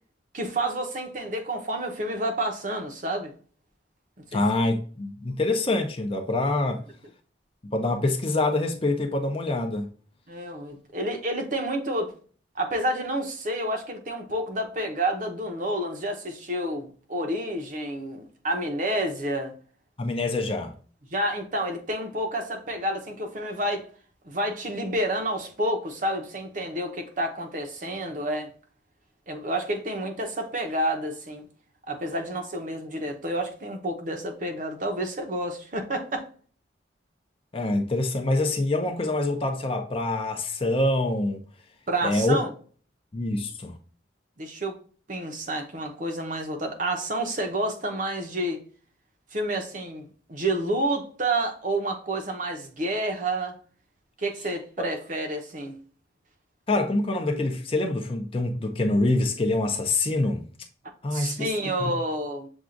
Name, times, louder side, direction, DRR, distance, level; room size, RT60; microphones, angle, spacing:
voice 1, 0.3-3.3 4.3-4.4 10.3-12.1 12.5-19.5 21.1-23.9 24.2-28.5 29.3-31.4 31.9-36.3 41.9-42.5 44.4-44.8 45.1-48.6 49.3-53.6 54.2-55.8 61.1-62.5, right 1 dB, 45° right, 0.8 m, -29 dB
voice 2, 4.3-6.8 7.6-9.9 20.0-20.7 37.5-41.4 42.0-42.4 43.1-43.8 54.8-54.9 56.7-60.4 61.0-61.5 61.8-61.9, left 2 dB, 30° left, 0.6 m, -25 dB
7.1 x 2.4 x 2.5 m
head